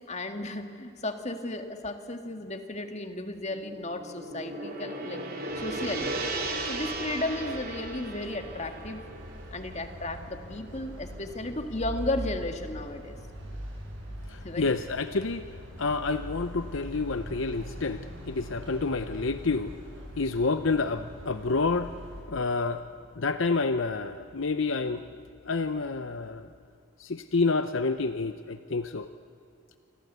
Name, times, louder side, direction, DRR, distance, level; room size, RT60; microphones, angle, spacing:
voice 1, 0.1-5.2 5.6-6.1 6.6-9.1 9.5-13.2 14.4-14.7, left 2 dB, 35° left, 6 dB, 2.0 m, -34 dB
Gong, 3.5-11.9, right 2 dB, 45° right, 4.0 m, -37 dB
sound 1, 5.5-22.2, equal, 65° right, 7.5 m, -42 dB
voice 2, 14.2-19.8 20.2-21.9 22.3-22.8 23.2-25.0 25.5-26.5 27.0-29.1, left 3 dB, 65° left, 10 dB, 0.8 m, -29 dB
28.0 x 25.0 x 8.2 m, 2.6 s
head